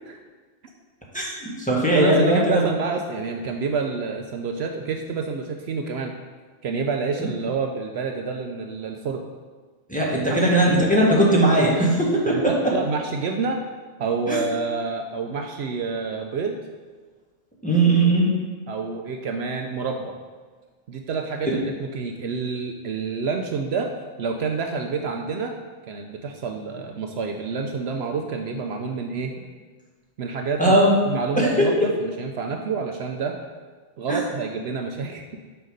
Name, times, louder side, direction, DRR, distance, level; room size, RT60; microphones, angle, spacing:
voice 1, 1.1-2.6 9.9-12.7 14.3-14.4 17.6-18.3 21.4-21.6 30.6-31.0 31.4-31.9 34.1-34.2, right 1 dB, 5° left, -5 dB, 1.4 m, -19 dB
voice 2, 1.9-6.1 6.6-9.2 10.3-10.4 12.3-13.6 14.0-16.6 18.7-20.1 20.9-23.9 24.2-25.5 25.9-29.3 30.2-30.8 31.1-33.4 34.0-35.3, right 5 dB, 70° right, 4 dB, 0.8 m, -28 dB
6.4 x 5.8 x 5.2 m, 1.4 s
omnidirectional pair, 1.2 m